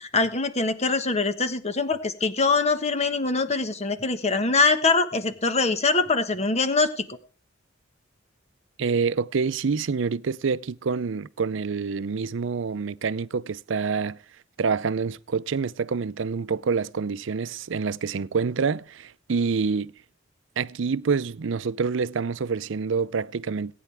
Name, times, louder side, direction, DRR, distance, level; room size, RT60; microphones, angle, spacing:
voice 1, 0.0-7.0, left 3 dB, 35° left, 1.3 m, -23 dB
voice 2, 8.8-14.2 14.6-19.9 20.6-23.7, right 5 dB, 70° right, 0.5 m, -27 dB
21.5 x 9.3 x 3.4 m
head